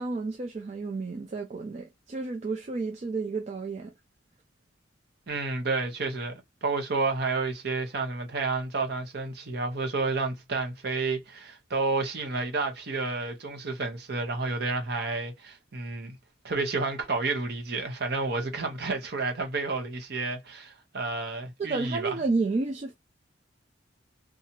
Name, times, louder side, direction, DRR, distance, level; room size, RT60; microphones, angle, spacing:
voice 1, 0.0-3.9 21.6-22.9, right 3 dB, 35° right, 0.3 m, -31 dB
voice 2, 5.3-6.3 6.6-16.2 16.4-22.1, right 3 dB, 55° right, 0.8 m, -30 dB
2.7 x 2.3 x 2.8 m
head